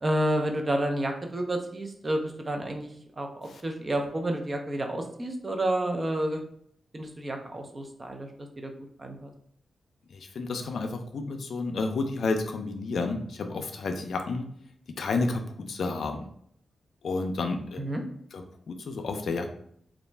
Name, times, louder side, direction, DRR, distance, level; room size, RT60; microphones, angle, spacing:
voice 1, 0.0-2.9 3.2-6.4 6.9-8.3 8.6-8.7 9.0-9.3 17.8-18.0, right 1 dB, 35° right, 3 dB, 0.5 m, -30 dB
voice 2, 10.1-14.5 15.0-16.3 17.0-17.8 18.3-19.5, left 3 dB, 75° left, 5 dB, 0.3 m, -31 dB
2.4 x 2.1 x 3.2 m, 0.66 s
cardioid pair, 60°, 0 cm